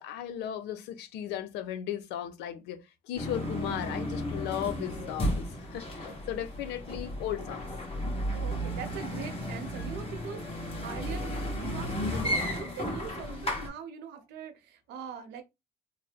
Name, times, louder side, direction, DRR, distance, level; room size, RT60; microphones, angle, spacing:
voice 1, 0.0-7.6, left 11 dB, 85° left, 0.6 m, -36 dB
sound 1, 3.1-13.7, equal, 35° left, 1.6 m, -34 dB
voice 2, 8.3-15.4, right 7 dB, 85° right, 0.8 m, -42 dB
3.1 x 2.1 x 3.4 m
cardioid pair, 110°, 17 cm